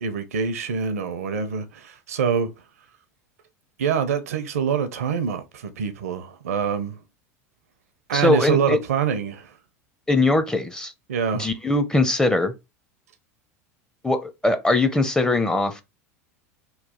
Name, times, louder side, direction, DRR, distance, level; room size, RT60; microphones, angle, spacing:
voice 1, 0.0-2.5 3.8-7.0 8.1-9.5 11.1-11.5, right 7 dB, 80° right, 0.5 m, -25 dB
voice 2, 8.1-8.8 10.1-10.9 11.3-12.5 14.0-15.8, left 2 dB, 10° left, 0.5 m, -21 dB
3.1 x 2.3 x 3.6 m
hypercardioid pair, 85°, 8 cm